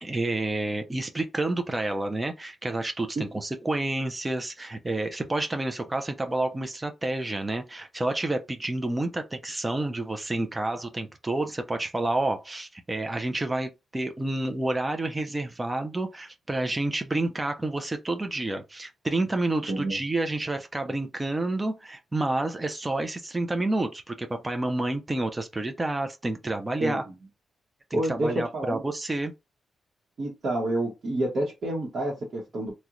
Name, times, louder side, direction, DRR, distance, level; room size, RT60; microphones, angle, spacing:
voice 1, 0.0-27.0 27.9-29.3, right 2 dB, 15° right, 0.4 m, -29 dB
voice 2, 27.9-28.8 30.2-32.7, right 1 dB, 45° right, 0.8 m, -28 dB
3.6 x 2.1 x 2.9 m
wide cardioid pair, 165°, 0 cm